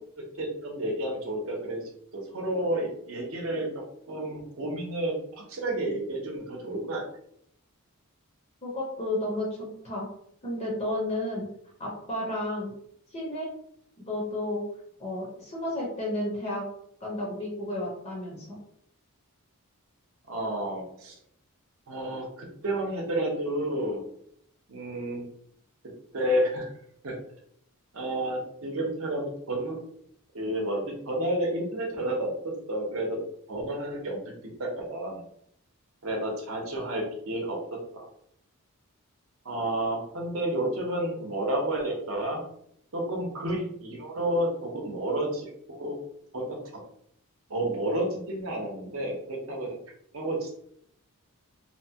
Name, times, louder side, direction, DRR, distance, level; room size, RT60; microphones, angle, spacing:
voice 1, 0.4-1.8 2.1-3.7 4.1-7.0 20.3-21.1 21.9-24.0 24.7-25.2 26.1-26.7 27.0-27.1 27.9-29.8 30.3-32.3 32.7-33.2 33.5-34.3 34.6-35.2 36.0-37.6 37.9-38.1 39.4-42.4 42.9-46.0 46.3-46.6 47.5-49.7 50.1-50.5, right 1 dB, 60° right, 0 dB, 0.7 m, -30 dB
voice 2, 8.6-10.1 10.4-11.5 11.8-12.7 13.1-13.5 14.1-14.6 15.0-16.6 17.0-18.5, left 1 dB, 30° left, -3 dB, 0.7 m, -32 dB
2.8 x 2.2 x 2.7 m, 0.71 s
head